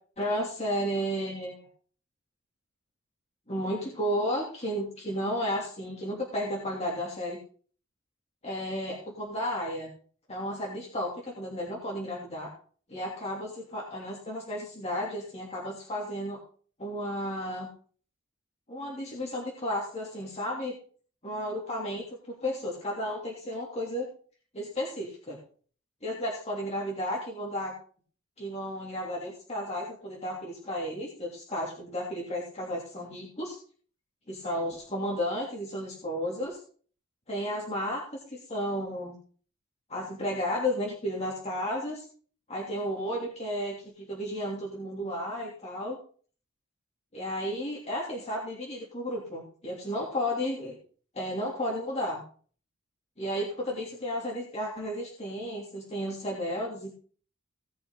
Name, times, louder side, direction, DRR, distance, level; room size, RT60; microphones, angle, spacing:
voice 1, 0.2-1.7 3.5-7.4 8.4-9.9 10.3-12.5 12.9-16.4 16.8-17.7 18.7-20.7 21.2-24.1 24.5-25.4 26.0-27.7 28.4-33.6 34.3-36.6 37.3-38.0 38.3-39.2 39.9-42.0 42.5-46.0 47.1-50.8 51.1-52.2 53.2-57.0, equal, 30° left, -3 dB, 2.9 m, -33 dB
18.0 x 6.3 x 4.0 m, 0.42 s
head